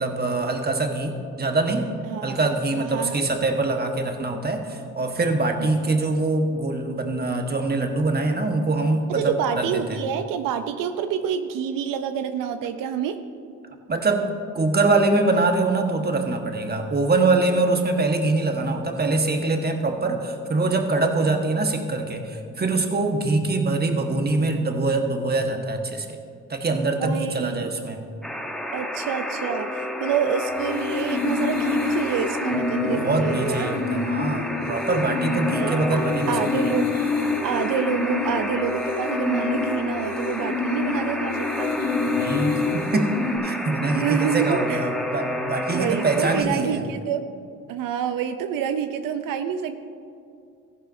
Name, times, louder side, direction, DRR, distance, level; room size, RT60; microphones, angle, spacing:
voice 1, 0.0-1.9 2.2-10.0 13.9-26.2 26.5-28.0 32.5-32.6 32.9-36.4 42.2-46.8, right 2 dB, 30° right, 4 dB, 1.3 m, -24 dB
voice 2, 2.1-2.4 2.8-3.3 5.6-5.7 9.1-13.2 27.0-27.7 28.7-33.7 35.6-36.9 37.4-41.7 43.9-44.9 45.7-47.2 47.7-49.8, right 8 dB, 85° right, 8 dB, 0.6 m, -27 dB
Alarm, 28.2-46.4, left 1 dB, ahead, 1.0 m, -30 dB
sound 1, 30.6-43.4, left 4 dB, 55° left, 2.2 m, -27 dB
14.5 x 11.0 x 2.6 m, 2.4 s
cardioid pair, 75°, 32 cm